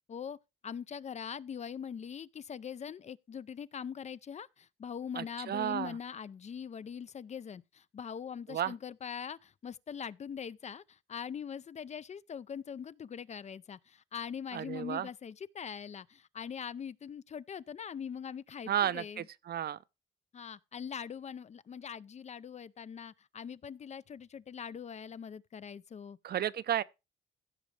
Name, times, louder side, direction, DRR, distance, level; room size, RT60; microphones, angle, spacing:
voice 1, 0.6-19.3 20.3-26.2, left 7 dB, 35° left, 0.5 m, -42 dB
voice 2, 5.2-6.0 8.5-8.7 14.5-15.1 18.7-19.8 26.2-26.8, right 10 dB, 55° right, 0.6 m, -33 dB
15.5 x 6.2 x 3.3 m
cardioid pair, 90°, 20 cm